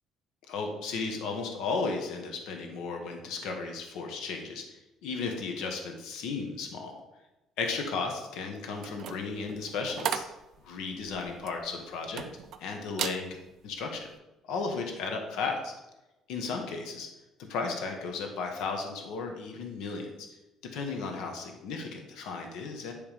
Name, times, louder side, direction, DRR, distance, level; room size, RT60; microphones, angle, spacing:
voice 1, 0.5-4.6 5.0-7.0 7.6-10.2 10.6-12.2 12.6-13.3 13.6-14.1 14.5-15.7 16.3-17.1 17.4-20.1 20.7-22.9, left 4 dB, 75° left, 3 dB, 1.2 m, -34 dB
sound 1, 8.8-12.6 12.9-13.2 13.7-14.0, right 8 dB, 55° right, 0.6 m, -36 dB
10.5 x 3.5 x 5.1 m, 1.0 s
cardioid pair, 160°, 0 cm